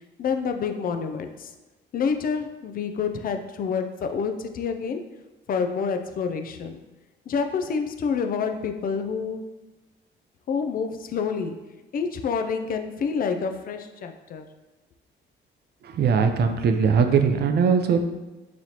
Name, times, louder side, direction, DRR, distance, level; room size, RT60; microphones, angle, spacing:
voice 1, 0.2-1.5 1.9-5.0 5.5-6.8 7.3-9.4 10.5-11.6 11.9-14.5, left 5 dB, 45° left, 7 dB, 0.4 m, -28 dB
voice 2, 15.8-18.0, right 6 dB, 55° right, 6 dB, 0.4 m, -20 dB
4.1 x 3.1 x 2.8 m, 1.1 s
cardioid pair, 90°, 20 cm